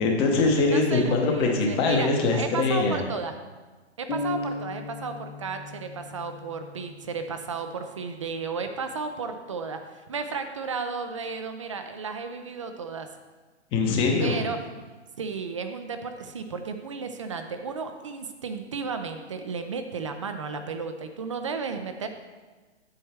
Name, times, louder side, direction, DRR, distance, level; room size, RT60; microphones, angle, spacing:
voice 1, 0.0-3.0 13.7-14.4, left 3 dB, 15° left, 2 dB, 0.8 m, -23 dB
voice 2, 0.7-3.3 4.0-13.1 14.2-14.6 15.2-22.1, right 5 dB, 30° right, 7 dB, 0.4 m, -33 dB
sound 1, 4.1-7.9, left 3 dB, 70° left, 1.7 m, -36 dB
8.6 x 7.9 x 3.3 m, 1.3 s
hypercardioid pair, 150°, 35 cm